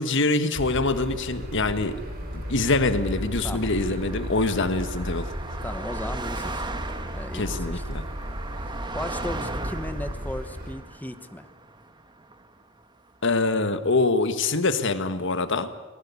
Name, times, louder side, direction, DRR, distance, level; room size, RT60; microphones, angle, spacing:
voice 1, 0.0-1.9 2.5-5.3 7.3-8.0 13.2-15.7, left 3 dB, 60° left, 10 dB, 1.6 m, -24 dB
sound 1, 0.5-10.7, equal, 45° right, 3.8 m, -34 dB
voice 2, 1.5-1.8 3.4-3.7 4.3-4.4 5.6-6.6 7.1-7.8 8.6-11.5, left 1 dB, 10° left, 10 dB, 1.0 m, -36 dB
Car passing by, 1.6-13.2, right 2 dB, 20° right, 1.4 m, -39 dB
19.5 x 19.0 x 9.8 m, 1.2 s
head